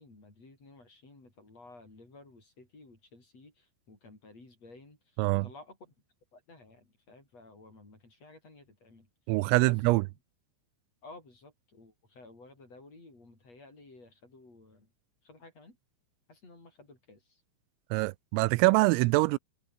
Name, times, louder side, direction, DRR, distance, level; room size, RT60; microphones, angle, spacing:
voice 1, 0.0-5.9 6.3-9.1 9.6-10.0 11.0-14.9 15.2-15.8 16.3-17.4, left 2 dB, 30° left, 8.5 m, -54 dB
voice 2, 9.3-10.0 17.9-19.4, right 24 dB, 90° right, 3.3 m, -24 dB
omnidirectional pair, 5.9 m